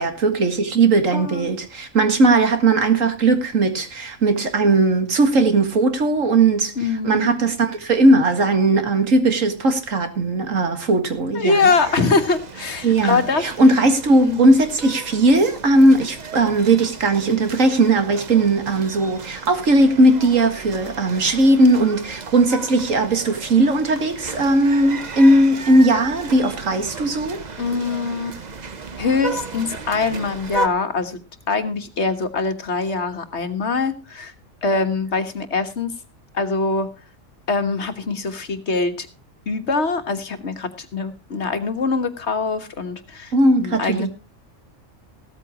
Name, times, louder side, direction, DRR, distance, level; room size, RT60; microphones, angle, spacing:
voice 1, 0.0-6.7 7.0-11.7 12.8-27.4 43.3-44.1, right 2 dB, 75° right, 2.2 m, -18 dB
voice 2, 1.1-1.5 6.8-7.4 11.3-13.4 14.2-14.5 27.6-28.4 28.9-31.2 31.5-34.3 34.6-35.9 36.3-36.9 37.5-39.1 39.5-44.1, left 4 dB, 60° left, 1.6 m, -23 dB
sound 1, 11.6-30.7, right 3 dB, 35° right, 1.0 m, -34 dB
16.0 x 13.5 x 2.9 m
omnidirectional pair, 1.3 m